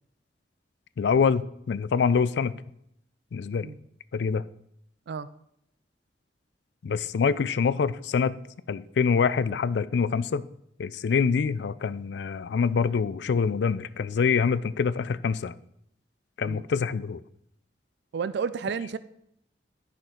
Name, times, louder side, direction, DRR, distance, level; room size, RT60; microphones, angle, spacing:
voice 1, 1.0-2.5 3.3-3.7 4.1-4.4 6.8-8.4 8.7-10.5 10.8-15.5 16.4-17.2, left 5 dB, 70° left, 0.4 m, -25 dB
voice 2, 18.1-19.0, right 6 dB, 65° right, 0.4 m, -31 dB
10.5 x 6.0 x 3.8 m
head